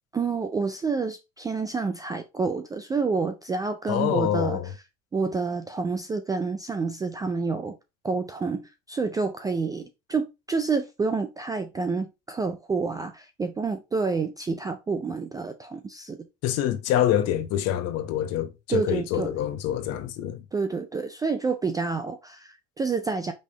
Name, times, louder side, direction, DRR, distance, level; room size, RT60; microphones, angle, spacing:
voice 1, 0.1-4.6 5.1-7.8 8.0-16.3 18.7-19.3 20.5-23.3, right 4 dB, 10° right, 0.3 m, -28 dB
voice 2, 3.9-4.7 16.4-20.4, left 11 dB, 50° left, 0.9 m, -26 dB
5.3 x 3.5 x 2.8 m
supercardioid pair, 120°, 32 cm